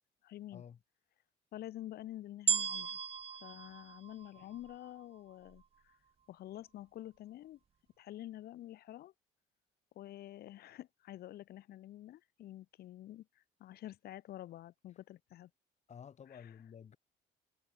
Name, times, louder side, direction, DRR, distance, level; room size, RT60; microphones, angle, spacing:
voice 1, 0.2-0.6 1.5-3.0 3.4-5.9 6.3-7.6 8.0-9.1 10.0-15.5 16.3-16.6, left 13 dB, 70° left, 3.9 m, -48 dB
sound 1, 2.5-4.9 5.5-5.6, right 7 dB, 35° right, 1.7 m, -36 dB
voice 2, 15.9-17.0, left 7 dB, 40° left, 4.7 m, -52 dB
cardioid pair, 110°, 17 cm